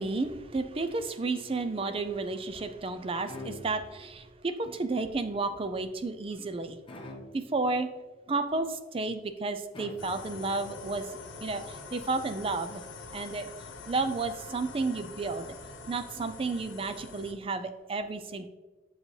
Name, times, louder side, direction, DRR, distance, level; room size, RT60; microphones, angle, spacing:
voice 1, 0.0-6.8 7.3-7.9 8.3-11.1 11.4-12.8 13.1-13.5 13.9-15.6 15.9-18.5, right 3 dB, 30° right, 10 dB, 0.4 m, -32 dB
sound 1, 3.2-4.1 6.9-7.6 9.7-10.5, left 1 dB, 25° left, 0.8 m, -45 dB
sound 2, 10.0-17.3, left 4 dB, 75° left, 1.0 m, -45 dB
7.4 x 6.5 x 3.2 m, 1.3 s
head